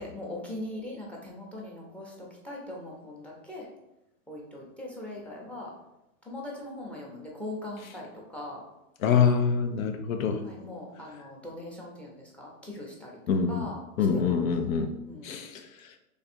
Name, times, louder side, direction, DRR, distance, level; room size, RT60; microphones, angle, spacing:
voice 1, 0.0-3.7 4.3-5.7 6.2-8.6 10.4-13.2 13.5-13.8 14.1-14.5 15.0-15.4, left 1 dB, 5° left, -1 dB, 0.6 m, -40 dB
voice 2, 9.0-10.4 13.3-13.7 14.0-14.9 15.2-15.6, left 6 dB, 75° left, 7 dB, 0.7 m, -25 dB
3.4 x 2.4 x 4.2 m, 0.89 s
hypercardioid pair, 130°, 41 cm